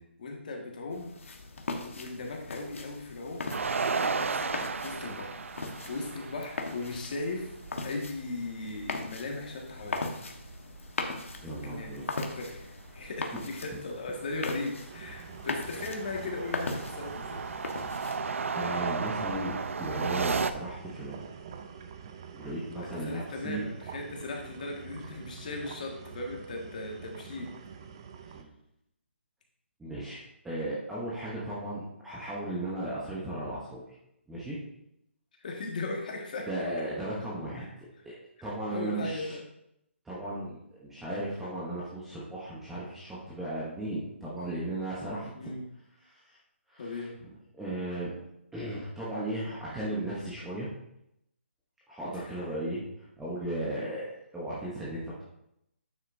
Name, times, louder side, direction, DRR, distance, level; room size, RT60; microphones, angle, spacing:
voice 1, 0.2-1.1 1.7-3.5 3.9-4.5 4.8-5.5 5.9-7.6 7.8-10.1 11.4-17.4 22.7-27.5 35.4-36.7 37.6-37.7 38.4-39.4 45.3-45.7 46.8-47.1 52.1-52.4, left 3 dB, 40° left, 1 dB, 1.6 m, -38 dB
sound 1, 0.9-18.2, left 3 dB, 80° left, 1.3 m, -40 dB
sound 2, 3.5-7.9 8.2-8.3 8.6-10.9 11.2-13.1 13.6-13.8 14.3-20.5, right 4 dB, 80° right, 0.5 m, -34 dB
voice 2, 11.4-12.0 18.5-21.3 22.3-23.6 28.3-28.6 29.8-33.8 34.3-34.6 36.5-37.6 38.0-39.4 40.0-45.3 46.1-46.4 46.7-48.1 48.5-50.7 51.9-52.8 53.2-55.2, right 1 dB, 5° right, -8 dB, 0.8 m, -36 dB
sound 3, 14.9-28.4, right 7 dB, 20° right, 0.4 m, -46 dB
9.2 x 7.7 x 2.6 m, 0.80 s
hypercardioid pair, 175°, 7 cm